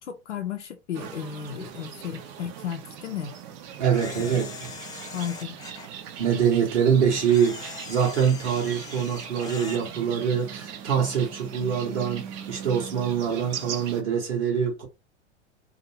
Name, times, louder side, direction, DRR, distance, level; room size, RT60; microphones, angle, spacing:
voice 1, 0.0-3.3 4.1-4.4 5.1-5.6 11.6-11.8, left 9 dB, 80° left, 0.5 m, -34 dB
sound 1, 0.9-14.0, right 8 dB, 40° right, 0.6 m, -40 dB
voice 2, 3.8-4.7 6.2-14.9, right 7 dB, 75° right, 1.0 m, -24 dB
Camera, 3.9-5.9 7.3-9.8, left 4 dB, 10° left, 0.4 m, -41 dB
2.6 x 2.5 x 2.8 m
figure-of-eight pair, 85°, 35 cm